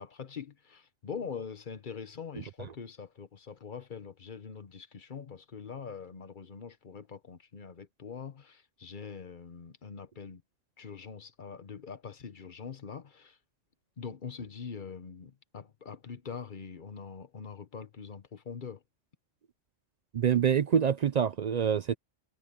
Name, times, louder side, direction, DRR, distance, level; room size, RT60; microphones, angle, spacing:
voice 1, 0.0-10.4 10.8-13.4 14.0-18.8, left 6 dB, 45° left, 1.1 m, -43 dB
voice 2, 20.1-21.9, right 8 dB, 65° right, 0.4 m, -26 dB
omnidirectional pair, 1.3 m